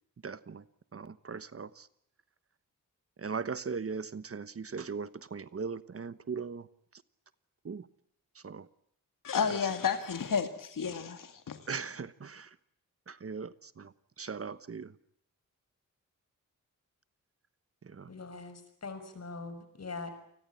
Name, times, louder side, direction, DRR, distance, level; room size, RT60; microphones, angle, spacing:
voice 1, 0.2-0.6 0.9-1.9 3.2-6.7 6.9-7.0 7.6-7.9 8.3-8.7 9.5-9.7 11.7-12.6 13.1-14.9 17.8-18.1, right 5 dB, 45° right, 15 dB, 1.2 m, -39 dB
voice 2, 9.2-11.6, left 6 dB, 80° left, 8 dB, 2.2 m, -31 dB
voice 3, 18.1-20.1, left 3 dB, 50° left, 10 dB, 6.1 m, -42 dB
29.0 x 20.5 x 8.6 m, 0.72 s
wide cardioid pair, 125°, 32 cm